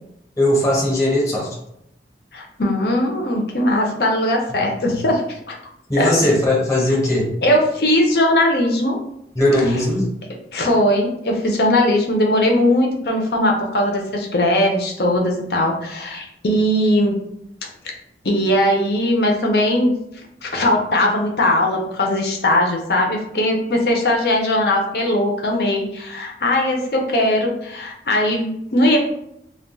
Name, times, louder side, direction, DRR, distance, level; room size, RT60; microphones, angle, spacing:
voice 1, 0.4-1.5 5.9-7.3 9.4-10.1, left 1 dB, 20° left, -3 dB, 0.9 m, -18 dB
voice 2, 2.3-5.2 5.5-5.6 6.0-6.1 7.4-9.0 9.7-9.8 10.5-17.2 18.2-19.9 20.4-29.0, left 1 dB, 60° left, 0 dB, 0.7 m, -19 dB
2.3 x 2.3 x 3.8 m, 0.77 s
head